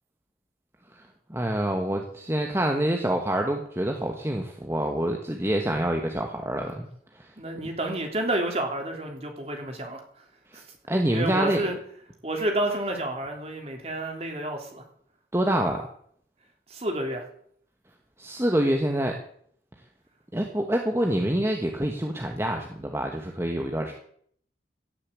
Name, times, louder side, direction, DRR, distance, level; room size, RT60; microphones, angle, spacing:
voice 1, 0.9-6.9 7.1-7.3 10.5-10.6 10.9-11.6 15.3-15.9 18.2-19.2 20.3-23.9, right 1 dB, 15° right, 2 dB, 1.3 m, -26 dB
voice 2, 7.4-10.0 10.5-10.6 11.1-11.8 12.2-14.8 16.7-17.2 23.8-23.9, right 1 dB, 35° right, 3 dB, 3.2 m, -30 dB
17.0 x 7.0 x 8.5 m, 0.63 s
head